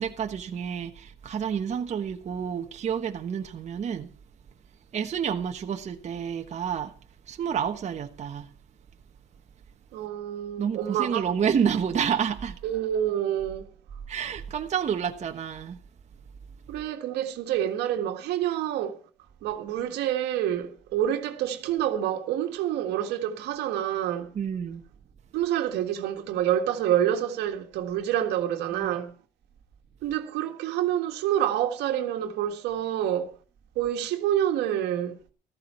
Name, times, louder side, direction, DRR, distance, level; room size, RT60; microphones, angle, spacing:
voice 1, 0.0-4.1 4.9-6.9 7.3-8.5 10.6-12.6 14.1-15.8 24.3-24.8 28.7-29.0, right 7 dB, 40° right, 1.2 m, -29 dB
voice 2, 9.9-11.3 12.6-13.7 16.7-19.0 19.4-24.3 25.3-29.1 30.0-33.4 33.8-35.2, right 11 dB, 85° right, 1.7 m, -27 dB
14.5 x 13.5 x 4.4 m
cardioid pair, 110°, 17 cm